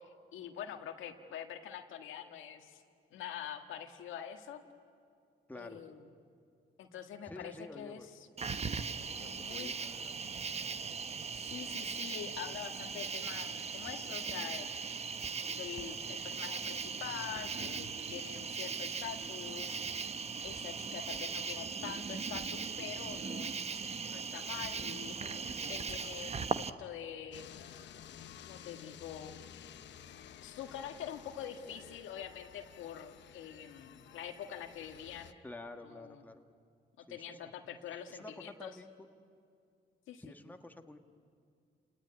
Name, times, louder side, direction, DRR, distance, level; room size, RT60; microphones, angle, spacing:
voice 1, 0.0-2.8 3.1-4.6 5.5-6.0 6.8-8.0 9.2-9.8 11.3-14.7 15.5-19.8 20.4-27.5 28.4-29.4 30.4-35.4 35.9-36.2 37.0-38.7 40.1-40.2, left 9 dB, 85° left, 5 dB, 1.7 m, -45 dB
voice 2, 5.5-5.8 7.2-8.1 9.1-10.2 11.7-11.8 13.8-13.9 35.4-36.5 37.1-37.5 38.1-38.9 40.2-41.0, left 2 dB, 10° left, 5 dB, 1.5 m, -49 dB
Cricket, 8.4-26.7, right 5 dB, 30° right, 0.9 m, -39 dB
sound 1, 27.3-35.3, left 9 dB, 65° left, 0.9 m, -53 dB
29.0 x 19.0 x 9.8 m, 2.4 s
cardioid pair, 90°, 20 cm